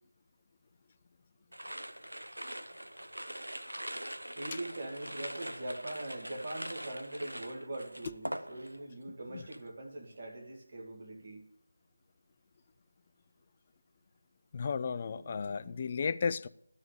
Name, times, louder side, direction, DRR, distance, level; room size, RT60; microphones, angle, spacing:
sound 1, 1.5-8.9 9.2-9.7, right 1 dB, 80° right, 0.9 m, -43 dB
voice 1, 4.3-11.4 14.8-15.7, right 1 dB, 35° right, 2.4 m, -42 dB
voice 2, 14.5-16.5, left 5 dB, 30° left, 0.4 m, -34 dB
11.5 x 4.8 x 8.4 m
figure-of-eight pair, 160°, 0 cm